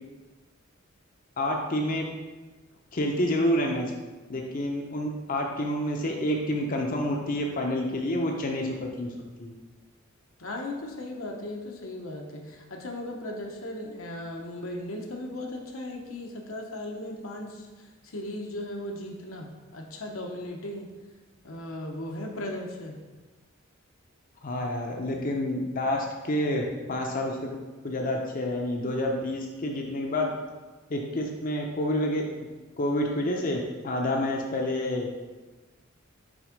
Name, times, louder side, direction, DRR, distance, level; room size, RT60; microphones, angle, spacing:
voice 1, 1.4-2.0 2.9-3.9 4.3-9.1 9.4-9.5 24.4-26.6 26.9-27.6 27.8-30.3 30.9-32.2 32.8-35.1, left 1 dB, 40° left, 0 dB, 0.6 m, -28 dB
voice 2, 10.4-17.7 18.0-20.9 21.4-23.0, left 1 dB, 80° left, 1 dB, 0.9 m, -37 dB
6.2 x 3.6 x 5.1 m, 1.3 s
head